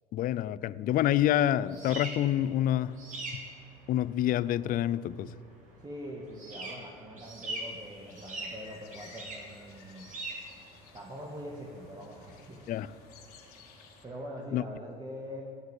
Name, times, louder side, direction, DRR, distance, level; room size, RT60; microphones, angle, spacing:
voice 1, 0.1-3.0 3.9-5.3 12.7-12.9 14.5-14.6, left 12 dB, 45° left, 0.4 m, -27 dB
sound 1, 1.0-14.2, right 2 dB, 40° right, 3.4 m, -44 dB
voice 2, 5.8-10.1 10.9-12.7 14.0-15.4, equal, 20° right, 1.6 m, -43 dB
sound 2, 7.4-14.1, left 8 dB, 80° left, 1.3 m, -57 dB
9.0 x 7.6 x 9.0 m
hypercardioid pair, 75°, 19 cm